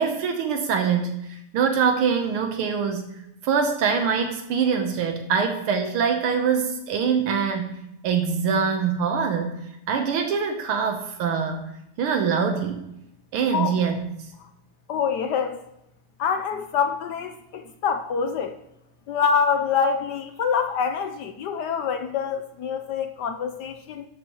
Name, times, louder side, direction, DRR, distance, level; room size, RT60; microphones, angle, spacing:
voice 1, 0.0-3.2 3.4-7.7 8.0-9.6 9.9-11.6 12.0-12.9 13.3-14.0, right 6 dB, 80° right, 5 dB, 1.8 m, -24 dB
voice 2, 14.9-15.6 16.2-18.5 19.1-24.0, left 6 dB, 70° left, 7 dB, 1.0 m, -25 dB
11.5 x 8.4 x 3.0 m, 0.84 s
omnidirectional pair, 2.4 m